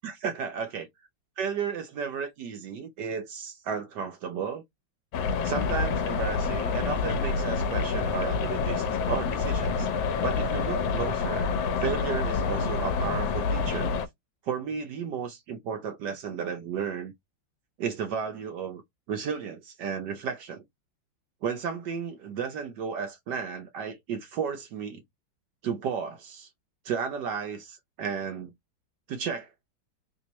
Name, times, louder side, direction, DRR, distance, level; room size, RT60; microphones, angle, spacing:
voice 1, 0.0-0.9 1.4-4.6 5.4-9.9 10.2-11.5 11.8-13.9 14.4-17.1 17.8-18.8 19.1-20.6 21.4-25.0 25.6-26.5 26.8-28.5 29.1-29.5, right 6 dB, 70° right, 1.2 m, -33 dB
sound 1, 5.1-14.1, left 5 dB, 90° left, 1.4 m, -27 dB
3.5 x 2.7 x 3.0 m
omnidirectional pair, 2.1 m